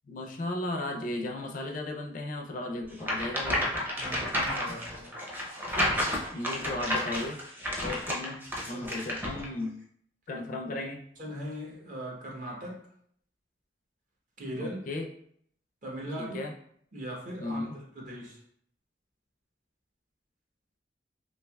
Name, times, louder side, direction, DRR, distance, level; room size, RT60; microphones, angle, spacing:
voice 1, 0.1-3.7 6.3-7.4 7.8-8.4 8.7-9.8 10.3-11.0 14.6-15.1 16.2-16.5 17.4-17.7, left 2 dB, 50° left, 2 dB, 0.4 m, -35 dB
sound 1, 3.0-9.5, left 1 dB, 10° right, 0.6 m, -31 dB
voice 2, 4.0-5.2 8.7-8.9 11.2-12.9 14.4-14.9 15.8-16.4 16.9-18.4, equal, 50° right, -2 dB, 0.8 m, -39 dB
3.2 x 2.8 x 2.2 m, 0.65 s
head